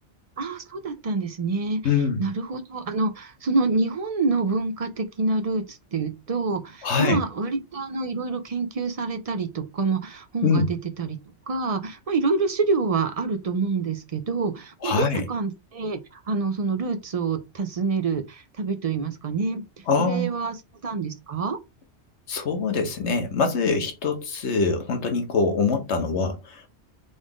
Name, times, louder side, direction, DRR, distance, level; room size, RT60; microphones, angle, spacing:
voice 1, 0.4-1.9 2.2-11.2 11.5-19.6 20.0-20.6 20.8-21.6, right 4 dB, 45° right, 0.5 m, -27 dB
voice 2, 1.8-2.3 6.8-7.2 10.4-10.7 14.8-15.2 19.9-20.3 22.3-26.7, left 4 dB, 70° left, 1.2 m, -24 dB
3.9 x 2.4 x 3.6 m
omnidirectional pair, 1.2 m